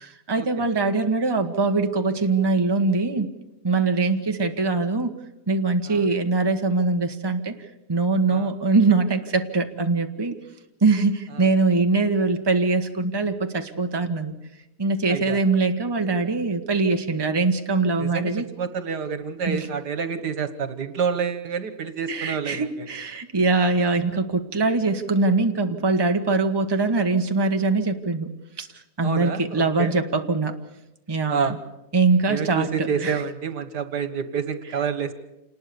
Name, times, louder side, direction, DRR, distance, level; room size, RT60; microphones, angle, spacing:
voice 1, 0.0-3.3 3.6-5.1 5.5-7.6 7.9-10.4 10.8-14.3 14.8-18.4 19.5-19.7 22.1-28.3 28.6-28.7 29.0-30.6 31.1-31.6 31.9-33.2, right 3 dB, 15° right, 5 dB, 1.3 m, -22 dB
voice 2, 18.0-22.9 29.0-29.9 31.3-31.6 32.3-35.1, right 6 dB, 80° right, 11 dB, 2.0 m, -28 dB
27.5 x 20.0 x 7.0 m, 0.90 s
omnidirectional pair, 1.8 m